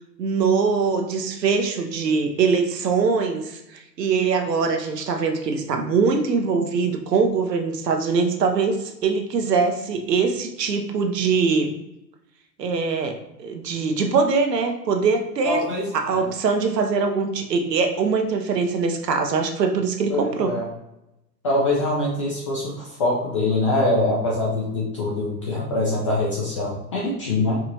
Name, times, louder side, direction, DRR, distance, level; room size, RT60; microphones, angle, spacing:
voice 1, 0.2-11.7 12.6-15.6 15.9-20.5, right 5 dB, 75° right, 5 dB, 0.8 m, -22 dB
voice 2, 15.4-16.3 20.1-20.7 21.4-27.6, left 2 dB, 20° left, -4 dB, 0.3 m, -24 dB
4.8 x 2.4 x 2.9 m, 0.89 s
figure-of-eight pair, 105°, 50 cm